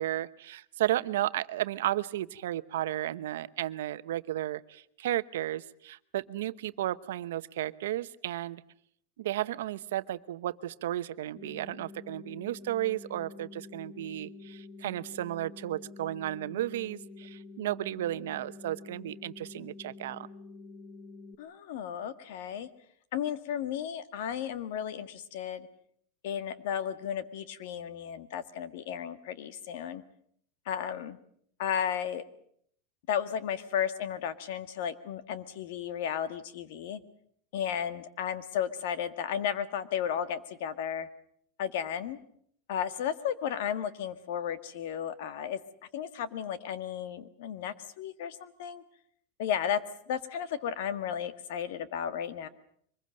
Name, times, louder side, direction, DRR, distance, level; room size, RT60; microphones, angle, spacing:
voice 1, 0.0-8.6 9.2-20.3, right 14 dB, 85° right, 14 dB, 0.9 m, -33 dB
sound 1, 11.4-21.4, left 3 dB, 20° left, 1.2 m, -48 dB
voice 2, 21.4-22.7 23.1-25.7 26.2-30.0 30.6-31.2 31.6-32.2 33.1-37.0 37.5-41.1 41.6-42.2 42.7-45.6 45.9-48.8 49.4-49.8 50.1-52.5, left 9 dB, 60° left, 13 dB, 1.6 m, -34 dB
24.0 x 21.0 x 7.7 m, 0.65 s
supercardioid pair, 175°, 0 cm